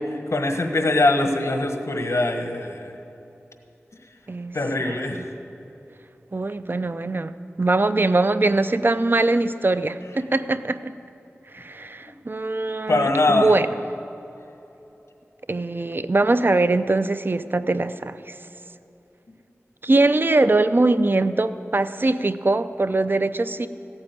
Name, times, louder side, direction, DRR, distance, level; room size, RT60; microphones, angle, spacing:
voice 1, 0.3-2.9 4.5-5.3 12.9-13.5, left 2 dB, 75° left, 5 dB, 1.4 m, -22 dB
voice 2, 4.3-5.0 6.3-10.9 11.5-13.7 15.5-18.4 19.8-23.7, right 2 dB, 45° right, 12 dB, 0.5 m, -22 dB
15.0 x 8.9 x 9.3 m, 3.0 s
wide cardioid pair, 65°, 5 cm